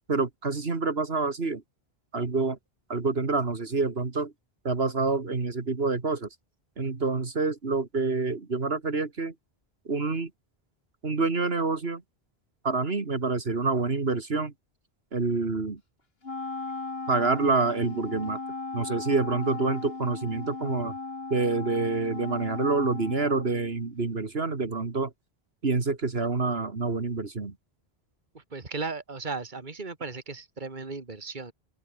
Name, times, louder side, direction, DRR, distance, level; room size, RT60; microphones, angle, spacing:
voice 1, 0.1-1.6 2.1-2.6 2.9-4.3 4.6-6.3 6.8-9.3 9.9-10.3 11.0-12.0 12.6-14.5 15.1-15.8 17.1-18.4 18.7-20.9 21.3-25.1 25.6-27.5, right 3 dB, 70° right, 2.4 m, -27 dB
Wind instrument woodwind instrument, 16.2-23.9, left 3 dB, 70° left, 2.9 m, -37 dB
voice 2, 28.3-31.5, right 4 dB, 50° right, 2.4 m, -36 dB
open air
omnidirectional pair, 1.1 m